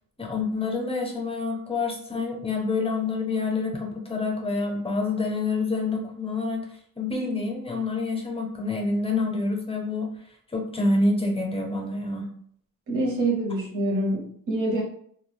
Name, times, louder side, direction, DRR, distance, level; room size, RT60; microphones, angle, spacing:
voice 1, 0.2-6.6 7.0-10.1 10.5-12.3, left 3 dB, 15° left, 2 dB, 0.5 m, -27 dB
voice 2, 12.9-14.8, right 1 dB, 55° right, -3 dB, 0.8 m, -26 dB
2.2 x 2.2 x 3.3 m, 0.63 s
wide cardioid pair, 155°, 37 cm